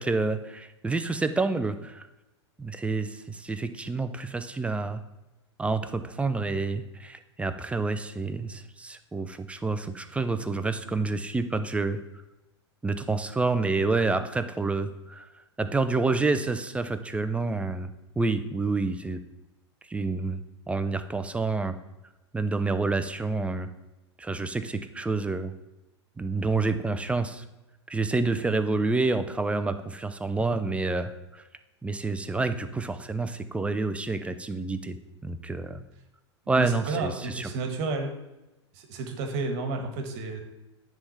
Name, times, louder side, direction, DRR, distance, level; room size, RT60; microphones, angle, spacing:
voice 1, 0.0-2.1 2.6-5.0 5.6-12.0 12.8-15.3 15.6-17.9 18.2-19.2 19.9-20.4 20.7-21.7 22.3-23.7 24.2-25.5 26.2-27.4 27.9-31.4 31.8-35.0 35.2-35.8 36.5-37.5, right 3 dB, 10° right, 9 dB, 0.6 m, -28 dB
voice 2, 36.6-38.1 38.7-40.4, right 3 dB, 50° right, 6 dB, 1.6 m, -31 dB
9.8 x 3.7 x 5.6 m, 1.0 s
hypercardioid pair, 100°, 15 cm